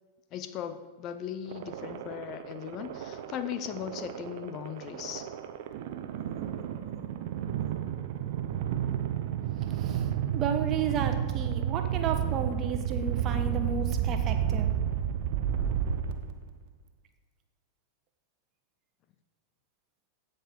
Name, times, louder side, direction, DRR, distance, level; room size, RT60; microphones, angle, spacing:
voice 1, 0.3-5.3, left 9 dB, 35° left, 11 dB, 0.7 m, -38 dB
sound 1, 1.5-16.6, right 9 dB, 50° right, 0.9 m, -31 dB
voice 2, 10.3-14.7, right 6 dB, 35° right, 6 dB, 1.4 m, -33 dB
16.0 x 5.5 x 6.8 m, 1.4 s
figure-of-eight pair, 90°, 0 cm